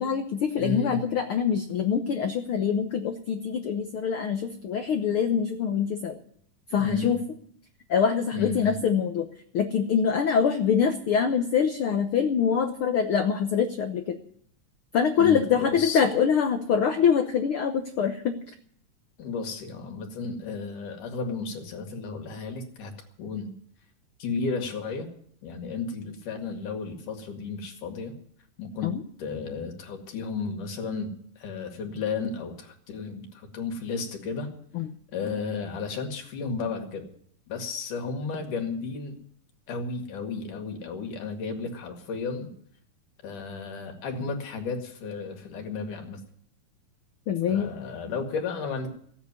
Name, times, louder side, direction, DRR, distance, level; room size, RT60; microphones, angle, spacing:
voice 1, 0.0-6.2 6.7-7.2 7.9-9.3 9.5-14.2 14.9-18.4 28.8-29.0 34.7-34.9 47.3-47.7, left 7 dB, 90° left, 6 dB, 1.1 m, -24 dB
voice 2, 0.6-1.0 6.8-7.1 8.3-8.8 15.2-16.0 19.2-22.9 23.2-23.5 24.2-25.1 25.4-28.1 28.6-28.9 29.2-34.5 35.1-37.1 37.5-39.2 39.7-42.5 43.2-46.2 47.5-48.9, left 4 dB, 70° left, 4 dB, 3.5 m, -33 dB
16.0 x 8.5 x 9.7 m, 0.64 s
omnidirectional pair, 3.9 m